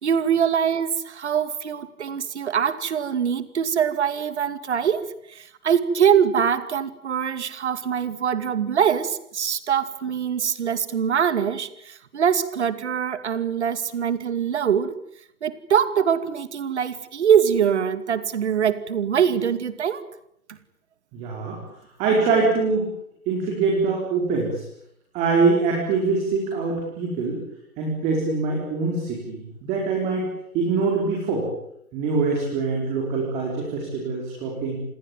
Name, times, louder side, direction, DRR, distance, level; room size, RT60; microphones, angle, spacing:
voice 1, 0.0-14.9 15.4-20.0, right 8 dB, 50° right, 2.4 m, -23 dB
voice 2, 21.1-21.6 22.0-22.9 23.3-24.6 25.1-27.4 27.8-30.3 30.5-31.5 31.9-34.8, right 4 dB, 15° right, 4.8 m, -24 dB
28.0 x 21.0 x 9.1 m
hypercardioid pair, 165°, 44 cm